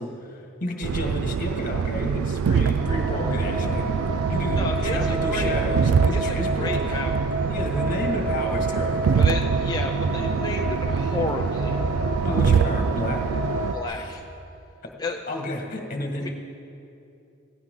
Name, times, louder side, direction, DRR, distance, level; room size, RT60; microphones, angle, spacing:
voice 1, 0.0-3.9 4.3-7.0 7.4-9.2 12.2-13.2 13.9-14.2 15.3-16.3, left 1 dB, 40° left, 1 dB, 1.8 m, -31 dB
sound 1, 0.8-13.7, right 6 dB, 80° right, 0.4 m, -25 dB
sound 2, 2.8-13.8, right 1 dB, 50° right, 4.2 m, -29 dB
voice 2, 4.5-5.5 6.1-7.3 9.2-11.8 13.7-14.2 15.0-15.2 16.2-16.3, left 3 dB, 20° left, 1 dB, 0.6 m, -32 dB
16.5 x 16.0 x 3.8 m, 2.7 s
head